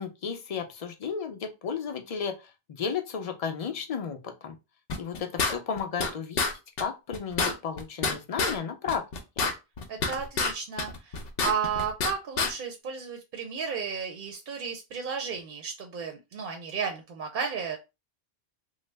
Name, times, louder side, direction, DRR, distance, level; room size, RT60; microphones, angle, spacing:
voice 1, 0.0-4.5 5.0-6.5 6.8-9.0 9.4-9.5, left 6 dB, 45° left, 0.5 m, -33 dB
sound 1, 4.9-6.1 6.4-6.5 6.8-6.9 7.1-8.6 8.9-10.5 10.8-12.1 12.4-12.5, left 4 dB, 70° left, 0.8 m, -28 dB
voice 2, 9.9-17.8, right 6 dB, 60° right, 0.6 m, -33 dB
3.1 x 2.0 x 3.2 m
omnidirectional pair, 1.1 m